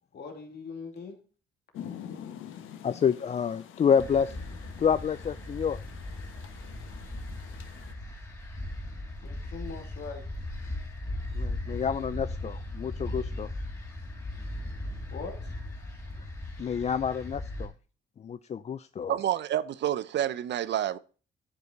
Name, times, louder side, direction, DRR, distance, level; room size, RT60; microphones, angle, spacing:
voice 1, 0.1-1.2 9.2-10.4 10.7-11.3 15.1-16.0, left 4 dB, 60° left, 2.7 m, -43 dB
Rain, 1.7-7.9, left 9 dB, 85° left, 1.1 m, -46 dB
voice 2, 2.8-4.3 4.8-5.8 11.4-13.5 16.6-17.7 18.2-19.1, left 7 dB, 35° left, 0.4 m, -28 dB
sound 1, 4.0-17.7, left 1 dB, 15° left, 3.1 m, -38 dB
voice 3, 19.1-21.0, right 11 dB, 65° right, 0.6 m, -28 dB
12.0 x 5.5 x 3.9 m
cardioid pair, 90°, 20 cm